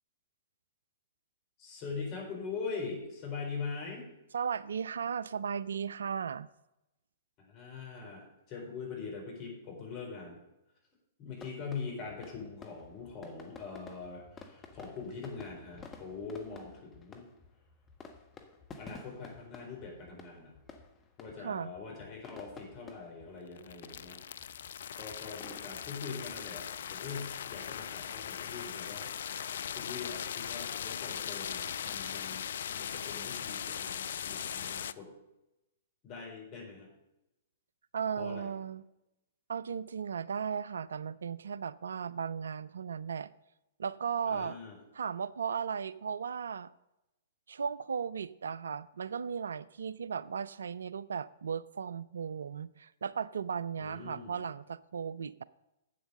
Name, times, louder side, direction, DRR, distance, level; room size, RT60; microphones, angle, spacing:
voice 1, 1.6-4.1 7.4-10.4 11.2-17.3 18.8-20.5 21.2-24.2 25.0-29.3 29.7-35.1 36.0-36.9 38.2-38.5 44.2-44.8 53.8-54.4, left 5 dB, 35° left, -1 dB, 4.2 m, -42 dB
voice 2, 4.3-6.5 21.4-21.7 37.9-38.8 39.5-43.3 43.8-44.6 44.9-46.7 47.5-55.4, right 7 dB, 70° right, 19 dB, 0.3 m, -36 dB
sound 1, 11.4-29.0, left 4 dB, 20° left, 1.3 m, -54 dB
sound 2, 23.5-34.9, left 9 dB, 60° left, 0.3 m, -39 dB
8.0 x 7.8 x 6.4 m, 0.92 s
figure-of-eight pair, 110°, 0 cm